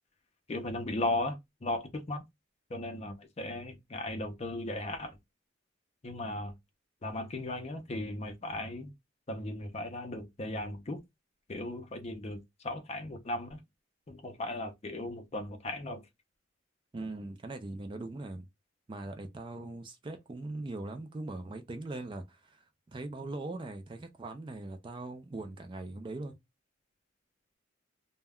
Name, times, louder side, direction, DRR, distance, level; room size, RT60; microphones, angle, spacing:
voice 1, 0.5-2.2 2.7-5.2 6.0-6.5 7.0-8.9 9.3-11.0 11.5-13.6 14.1-16.0, left 2 dB, 30° left, 0.5 m, -36 dB
voice 2, 16.9-18.5 18.9-26.4, right 2 dB, 25° right, 0.3 m, -41 dB
2.2 x 2.1 x 3.4 m
head